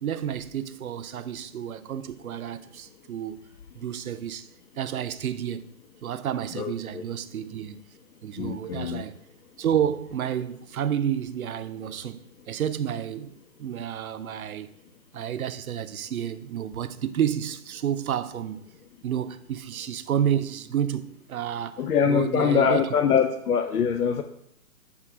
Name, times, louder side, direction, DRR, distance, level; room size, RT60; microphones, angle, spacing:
voice 1, 0.0-3.4 3.7-4.5 4.8-5.7 6.0-7.8 8.2-9.2 9.6-13.3 13.6-14.7 15.1-18.6 19.0-23.3, right 9 dB, 70° right, 0.7 m, -30 dB
voice 2, 6.6-7.0 8.4-9.0 21.8-24.2, left 7 dB, 90° left, 0.7 m, -23 dB
7.4 x 3.7 x 4.8 m
hypercardioid pair, 160°, 44 cm